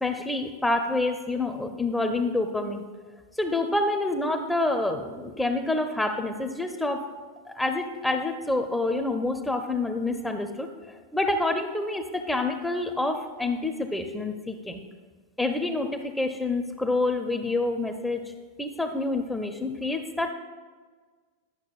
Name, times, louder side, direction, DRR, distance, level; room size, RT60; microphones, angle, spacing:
voice 1, 0.0-2.8 3.4-7.0 7.5-14.8 15.4-18.2 18.6-20.3, left 2 dB, 5° left, 6 dB, 0.5 m, -27 dB
10.0 x 6.1 x 2.3 m, 1.5 s
figure-of-eight pair, 90°, 0 cm